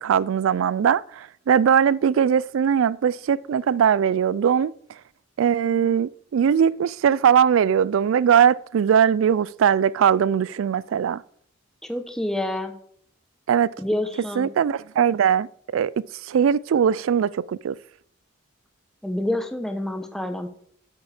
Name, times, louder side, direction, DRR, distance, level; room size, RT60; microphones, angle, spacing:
voice 1, 0.0-4.7 5.4-11.2 13.5-13.7 14.4-15.9 16.2-17.8, right 8 dB, 80° right, 0.3 m, -20 dB
voice 2, 11.8-12.7 13.8-14.5 19.0-20.5, left 1 dB, ahead, 0.8 m, -27 dB
8.4 x 7.6 x 4.9 m
head